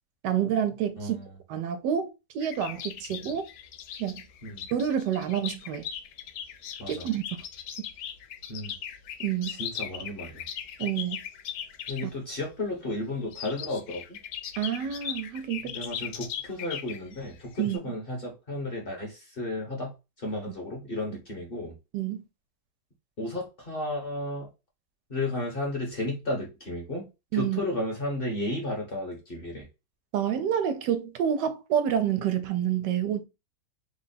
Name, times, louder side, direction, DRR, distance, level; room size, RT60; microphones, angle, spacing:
voice 1, 0.2-1.2 1.5-3.5 4.0-4.2 4.7-5.9 6.9-7.2 7.8-7.9 9.2-9.5 10.8-11.2 14.6-15.7 17.6-17.8 21.9-22.2 27.3-27.6 30.1-33.2, right 9 dB, 85° right, 1.2 m, -28 dB
voice 2, 1.0-1.4 3.1-3.3 4.4-4.7 6.8-7.1 8.5-8.7 9.5-10.4 11.9-14.2 15.6-21.7 23.2-24.5 25.1-27.1 27.3-29.7, left 1 dB, 35° left, 1.3 m, -33 dB
sound 1, 2.4-12.1 13.2-17.8, left 9 dB, 80° left, 1.2 m, -39 dB
3.4 x 2.3 x 4.0 m
omnidirectional pair, 1.8 m